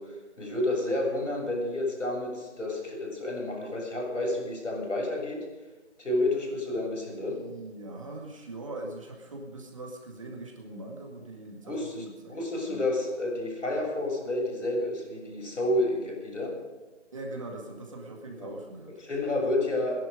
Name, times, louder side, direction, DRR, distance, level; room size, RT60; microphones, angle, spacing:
voice 1, 0.0-5.5 6.0-7.5 11.6-12.0 12.3-16.6 18.4-18.5 19.0-20.0, left 1 dB, 85° left, 0 dB, 7.1 m, -30 dB
voice 2, 7.3-12.8 17.1-18.9, right 2 dB, 25° right, 0 dB, 1.9 m, -41 dB
21.0 x 10.5 x 5.2 m, 1.1 s
figure-of-eight pair, 170°, 36 cm